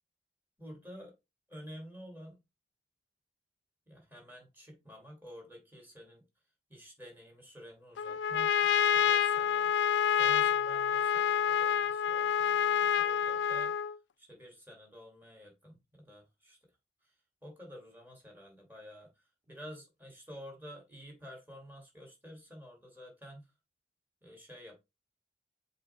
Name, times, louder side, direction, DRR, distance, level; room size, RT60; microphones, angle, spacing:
voice 1, 0.6-1.1 1.5-2.4 3.9-6.2 6.7-9.7 10.2-13.8 14.2-16.6 17.0-17.1 17.4-23.5 24.2-24.8, equal, 10° right, 2.6 m, -50 dB
Trumpet, 8.0-14.0, left 8 dB, 80° left, 0.4 m, -28 dB
7.2 x 3.1 x 4.5 m
head